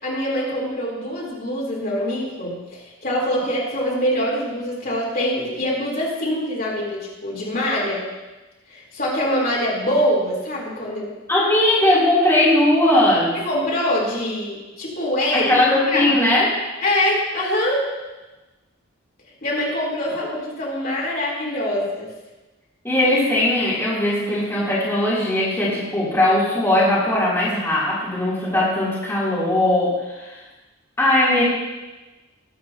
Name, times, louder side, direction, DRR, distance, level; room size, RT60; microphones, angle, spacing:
voice 1, 0.0-8.0 8.7-11.1 13.3-15.6 15.9-16.1 16.8-17.8 19.4-22.1, left 1 dB, 45° left, -6 dB, 3.6 m, -24 dB
voice 2, 11.3-13.4 15.3-16.5 22.8-29.9 30.2-30.4 31.0-31.4, left 1 dB, 10° left, -10 dB, 3.2 m, -19 dB
21.0 x 8.4 x 2.9 m, 1.1 s
head